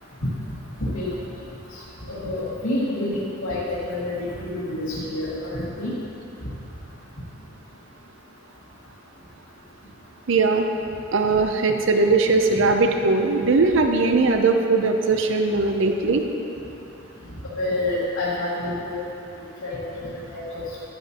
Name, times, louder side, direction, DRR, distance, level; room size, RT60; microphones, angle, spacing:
voice 1, 2.1-5.9 17.6-19.0 19.6-19.8 20.3-20.4, left 1 dB, 85° left, -10 dB, 1.9 m, -27 dB
voice 2, 10.3-10.6 11.1-16.2, right 3 dB, 65° right, 5 dB, 0.6 m, -20 dB
10.5 x 10.0 x 2.9 m, 2.9 s
head